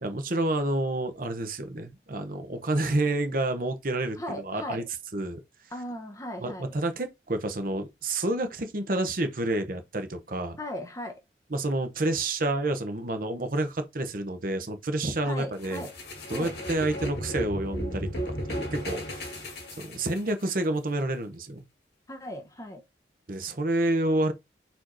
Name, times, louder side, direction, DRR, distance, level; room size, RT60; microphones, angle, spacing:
voice 1, 0.0-4.8 5.1-5.4 6.4-10.6 11.5-15.9 16.3-19.4 19.7-21.6 23.3-24.3, right 2 dB, 50° right, 0.8 m, -29 dB
voice 2, 4.2-4.8 5.7-6.7 10.6-11.2 15.2-15.9 16.3-16.5 22.1-22.8, left 1 dB, 15° left, 0.8 m, -37 dB
sound 1, 15.6-20.5, equal, 60° left, 1.8 m, -35 dB
4.5 x 4.3 x 2.6 m
head